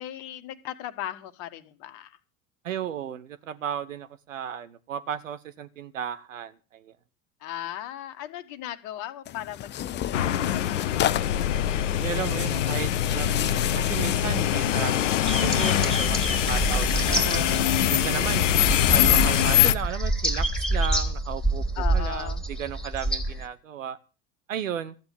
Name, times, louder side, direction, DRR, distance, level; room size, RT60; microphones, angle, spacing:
voice 1, 0.0-2.2 7.4-11.5 17.0-17.9 21.7-22.5, left 12 dB, 50° left, 11 dB, 1.7 m, -37 dB
voice 2, 2.6-6.9 12.0-16.2 16.5-17.5 17.9-18.5 18.9-21.6 21.9-24.0 24.5-24.9, right 9 dB, 70° right, 16 dB, 1.0 m, -34 dB
Tearing, 9.2-14.6, left 12 dB, 25° left, 0.7 m, -33 dB
sound 1, 10.1-19.8, left 11 dB, 65° left, 0.9 m, -23 dB
sound 2, 15.2-23.4, right 1 dB, ahead, 3.3 m, -28 dB
14.5 x 9.3 x 7.0 m, 0.36 s
figure-of-eight pair, 75°, 40 cm